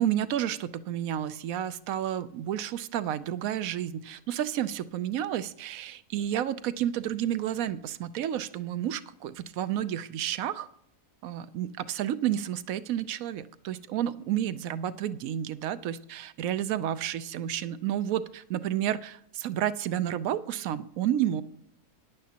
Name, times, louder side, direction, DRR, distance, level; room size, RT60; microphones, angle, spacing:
voice 1, 0.0-10.7 11.2-21.4, right 11 dB, 70° right, 13 dB, 0.9 m, -31 dB
14.5 x 10.0 x 2.8 m, 0.72 s
omnidirectional pair, 1.7 m